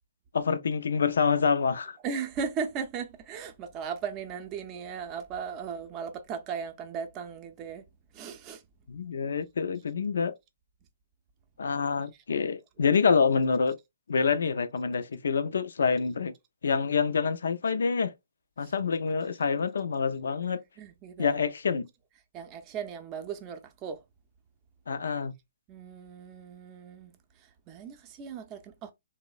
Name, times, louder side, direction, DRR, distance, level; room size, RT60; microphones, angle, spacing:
voice 1, 0.3-2.0 8.9-10.3 11.6-13.8 14.1-16.3 16.6-18.1 18.6-20.6 21.2-21.9 24.9-25.3, left 5 dB, 70° left, 0.4 m, -27 dB
voice 2, 2.0-7.9 8.1-8.6 18.6-18.7 20.8-21.4 22.3-24.0 25.7-28.9, right 6 dB, 25° right, 0.5 m, -37 dB
2.9 x 2.0 x 2.4 m
hypercardioid pair, 140°, 0 cm